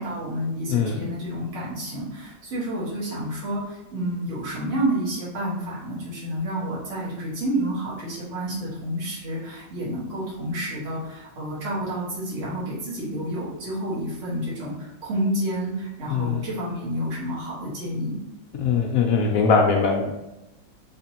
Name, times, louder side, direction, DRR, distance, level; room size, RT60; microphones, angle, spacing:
voice 1, 0.0-18.3, right 1 dB, 45° right, -7 dB, 1.6 m, -29 dB
voice 2, 16.1-16.4 18.6-20.1, left 5 dB, 75° left, 2 dB, 0.8 m, -21 dB
3.6 x 3.3 x 2.8 m, 0.96 s
omnidirectional pair, 1.9 m